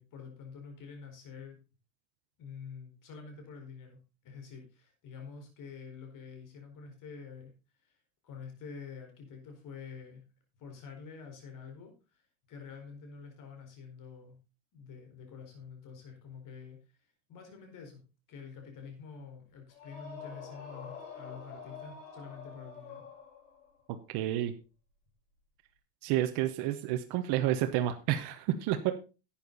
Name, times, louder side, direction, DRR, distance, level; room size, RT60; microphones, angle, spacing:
voice 1, 0.0-1.6 2.4-4.0 4.2-7.5 7.8-8.0 8.2-10.2 10.6-12.2 12.5-14.4 14.7-16.8 17.3-18.0 18.3-23.0, left 5 dB, 40° left, 4 dB, 4.7 m, -47 dB
sound 1, 19.7-23.7, left 6 dB, 85° left, 7.8 m, -47 dB
voice 2, 24.1-24.5 26.0-28.9, right 12 dB, 55° right, 6 dB, 1.2 m, -30 dB
12.0 x 8.9 x 4.1 m, 0.31 s
supercardioid pair, 130°, 46 cm